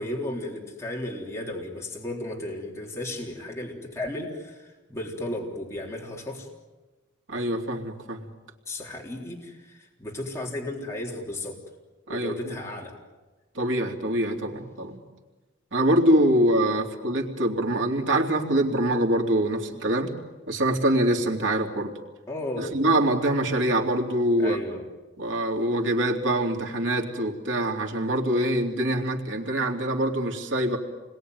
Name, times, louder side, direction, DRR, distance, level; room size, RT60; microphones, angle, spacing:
voice 1, 0.0-6.5 8.7-11.6 12.1-12.9 22.3-22.8 24.4-24.8, left 1 dB, 15° left, -2 dB, 3.7 m, -34 dB
voice 2, 7.3-8.2 12.1-12.6 13.5-15.0 15.7-20.1 20.5-21.9 22.6-24.6 25.2-30.8, right 1 dB, 85° right, 1 dB, 3.1 m, -24 dB
29.0 x 21.5 x 9.5 m, 1.2 s
head